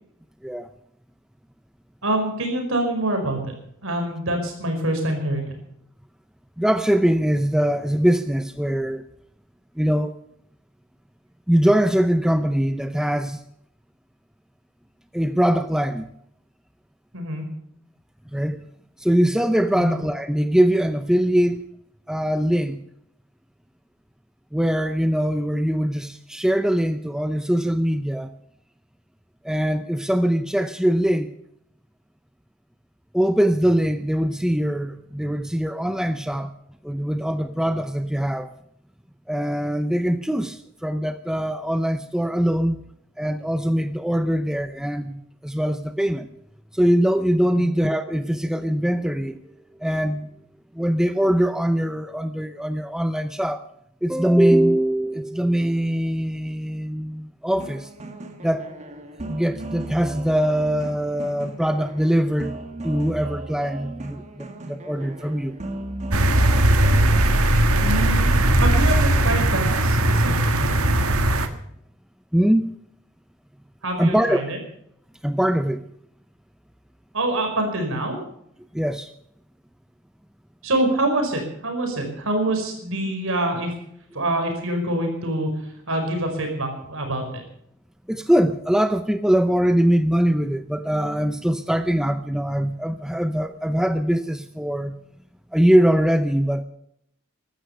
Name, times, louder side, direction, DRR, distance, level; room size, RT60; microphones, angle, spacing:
voice 1, 2.0-3.4 3.8-5.5 17.1-17.4 19.7-19.9 47.5-47.7 67.8-68.2 68.6-70.3 70.6-70.7 73.8-74.4 77.1-78.2 80.6-83.7 84.1-85.5 85.9-87.4, right 1 dB, 65° right, 4 dB, 5.1 m, -25 dB
voice 2, 6.6-9.0 9.8-10.2 11.5-13.4 15.1-16.1 18.3-18.6 19.0-21.6 22.1-22.8 24.5-28.3 29.4-31.3 33.1-36.5 36.8-38.5 39.3-42.8 43.2-46.3 46.7-49.4 49.8-50.3 50.7-53.7 54.0-57.9 58.4-58.7 59.2-62.6 62.8-65.6 72.3-72.7 74.0-74.4 75.2-75.9 78.7-79.1 88.1-95.0 95.5-96.6, equal, 5° right, 10 dB, 0.6 m, -22 dB
sound 1, 57.5-67.2, right 2 dB, 35° right, 1.6 m, -36 dB
sound 2, 66.1-71.5, right 1 dB, 90° right, 1.5 m, -18 dB
15.0 x 12.5 x 6.8 m, 0.72 s
head